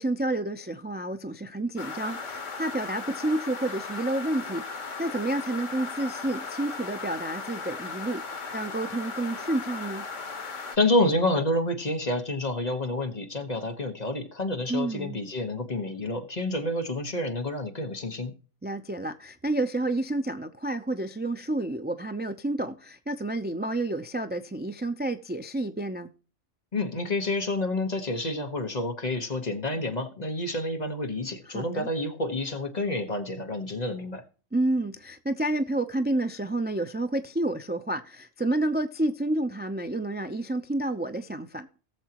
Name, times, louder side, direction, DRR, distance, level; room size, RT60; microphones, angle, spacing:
voice 1, 0.0-8.2 8.5-10.0 14.7-15.2 18.6-26.1 31.5-31.9 34.5-41.7, right 1 dB, 15° right, 0.4 m, -30 dB
sound 1, 1.8-10.8, left 4 dB, 85° left, 1.8 m, -37 dB
voice 2, 10.7-18.3 26.7-34.2, left 1 dB, 35° left, 1.3 m, -28 dB
18.5 x 7.2 x 3.0 m
omnidirectional pair, 1.3 m